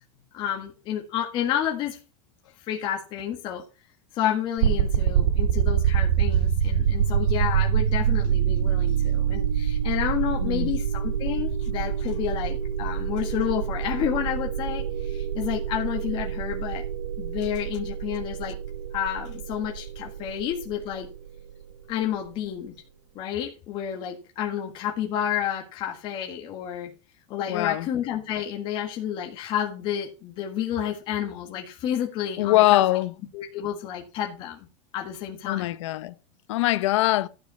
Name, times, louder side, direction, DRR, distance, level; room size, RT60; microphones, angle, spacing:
voice 1, 0.3-2.0 2.7-3.6 4.1-16.8 17.2-18.6 18.9-21.1 21.9-22.7 23.1-26.9 27.3-32.8 33.3-34.7 34.9-35.7, left 10 dB, 30° left, 1.7 m, -30 dB
sound 1, 4.6-21.5, right 8 dB, 65° right, 3.0 m, -26 dB
voice 2, 10.4-10.8 27.5-27.9 32.4-33.1 35.5-36.1 36.5-37.3, left 16 dB, 70° left, 0.8 m, -22 dB
12.5 x 5.3 x 5.7 m
supercardioid pair, 175°, 16 cm